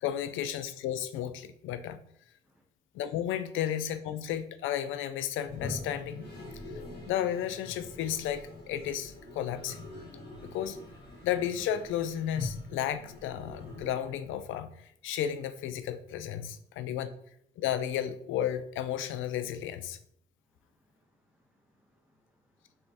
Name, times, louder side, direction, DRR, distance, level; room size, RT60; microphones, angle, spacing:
voice 1, 0.0-2.0 2.9-6.3 7.1-9.8 10.4-10.8 11.2-17.1 17.6-20.0, left 10 dB, 85° left, 12 dB, 0.4 m, -33 dB
Toilet flush, 5.4-14.5, left 2 dB, 55° left, 1.3 m, -44 dB
voice 2, 20.8-22.8, equal, 5° right, 0 dB, 1.0 m, -71 dB
3.4 x 3.3 x 4.1 m, 0.69 s
cardioid pair, 90°, 20 cm